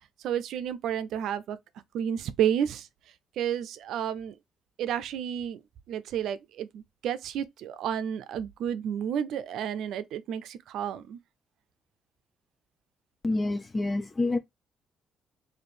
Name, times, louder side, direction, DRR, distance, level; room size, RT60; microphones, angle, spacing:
voice 1, 0.2-1.6 1.9-2.9 3.4-4.3 4.8-5.6 5.9-11.2, right 9 dB, 80° right, 0.5 m, -31 dB
voice 2, 13.2-14.4, left 2 dB, 30° left, 0.4 m, -27 dB
3.1 x 2.6 x 4.2 m
cardioid pair, 90°, 0 cm